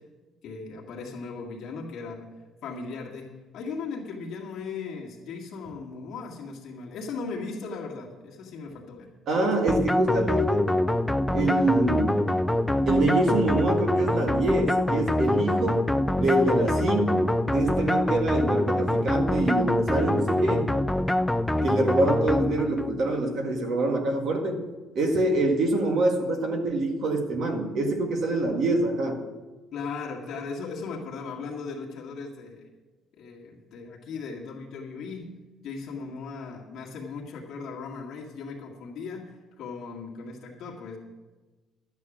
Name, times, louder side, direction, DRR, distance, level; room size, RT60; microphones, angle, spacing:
voice 1, 0.4-2.3 2.6-9.1 29.7-32.7 33.2-35.3 35.6-41.0, left 4 dB, 55° left, -3 dB, 2.0 m, -37 dB
voice 2, 9.3-10.7 11.3-12.3 12.8-20.7 21.6-24.6 24.9-29.2, right 2 dB, 45° right, 4 dB, 1.7 m, -25 dB
sound 1, 9.7-23.0, left 1 dB, 5° left, 0.3 m, -25 dB
12.5 x 8.9 x 6.2 m, 1.2 s
cardioid pair, 180°, 0 cm